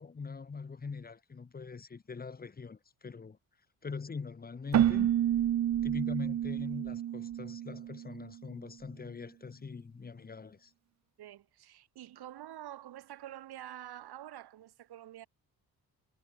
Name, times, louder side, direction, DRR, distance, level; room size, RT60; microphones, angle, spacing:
voice 1, 0.0-3.4 3.8-5.1 5.8-10.7, left 5 dB, 25° left, 4.1 m, -42 dB
Keyboard (musical), 4.7-8.4, right 11 dB, 45° right, 0.8 m, -30 dB
voice 2, 11.2-15.3, right 12 dB, 85° right, 7.3 m, -47 dB
cardioid pair, 180°, 38 cm